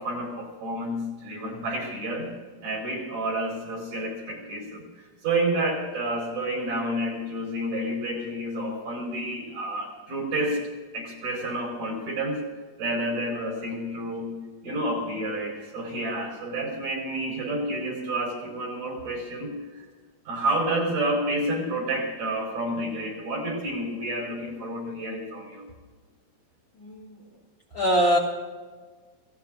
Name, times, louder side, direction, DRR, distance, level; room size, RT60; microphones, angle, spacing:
voice 1, 0.0-2.3 2.6-10.6 10.9-12.4 12.8-14.3 14.6-19.8 20.3-25.7, right 1 dB, 75° right, -1 dB, 6.3 m, -30 dB
voice 2, 26.8-27.2 27.7-28.2, equal, 50° left, -2 dB, 1.7 m, -22 dB
29.5 x 17.5 x 2.6 m, 1.4 s
omnidirectional pair, 3.8 m